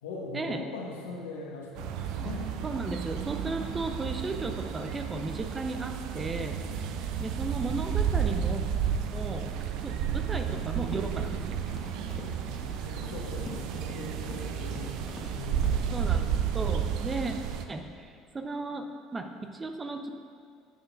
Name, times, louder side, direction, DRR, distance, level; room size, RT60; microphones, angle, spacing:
voice 1, 0.0-2.6 3.3-3.6 9.9-10.1 12.7-16.2, left 3 dB, 80° left, -2 dB, 1.2 m, -41 dB
sound 1, 1.8-17.6, right 8 dB, 65° right, 0.5 m, -32 dB
voice 2, 2.6-6.6 7.2-8.6 9.1-9.5 9.8-11.6 15.9-16.3 16.5-17.3 17.7-20.2, right 3 dB, 25° right, 6 dB, 0.7 m, -35 dB
Run, 10.2-15.3 15.6-15.7, left 2 dB, 40° left, 1.2 m, -45 dB
10.5 x 6.7 x 2.5 m, 2.3 s
hypercardioid pair, 75°, 0 cm